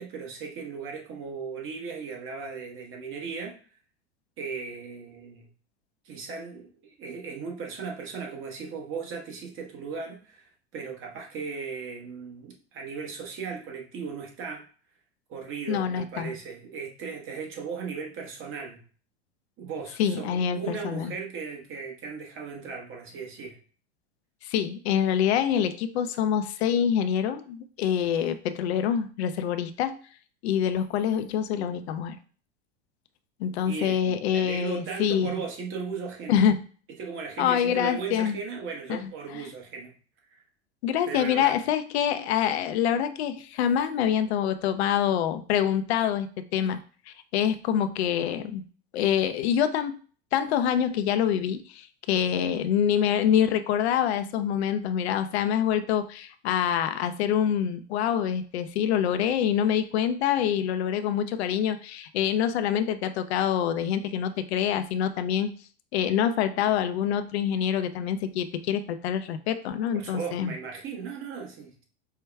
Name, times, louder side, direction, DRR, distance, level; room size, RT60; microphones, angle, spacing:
voice 1, 0.0-3.5 4.4-5.5 6.0-10.4 10.7-14.6 15.3-18.8 19.6-23.6 33.6-36.4 37.0-40.0 40.3-40.4 41.1-41.6 69.9-71.8, right 5 dB, 40° right, 1 dB, 1.2 m, -37 dB
voice 2, 15.7-16.3 20.0-21.1 24.4-30.0 30.4-32.2 33.4-35.3 36.3-36.6 37.4-38.4 38.9-39.1 40.8-46.8 47.1-48.6 48.9-50.0 50.3-65.5 65.9-70.5, left 9 dB, 75° left, 10 dB, 0.5 m, -26 dB
4.5 x 2.2 x 3.4 m, 0.41 s
hypercardioid pair, 100°, 32 cm